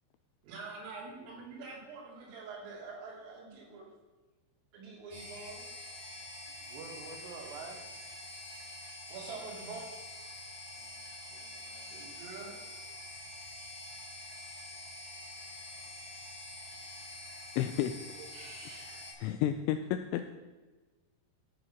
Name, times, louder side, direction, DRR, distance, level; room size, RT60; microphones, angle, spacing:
voice 1, 0.4-3.9 4.7-5.9 9.1-10.0 11.9-12.6 18.2-18.9, right 4 dB, 90° right, -3 dB, 5.4 m, -46 dB
sound 1, 5.1-19.1, left 1 dB, 40° right, 5.1 m, -46 dB
voice 2, 6.7-7.8 10.8-12.0, right 4 dB, 70° right, 4 dB, 3.1 m, -48 dB
voice 3, 17.6-17.9 18.8-20.3, left 11 dB, 85° left, 8 dB, 2.8 m, -32 dB
14.0 x 6.3 x 5.9 m, 1.3 s
omnidirectional pair, 5.7 m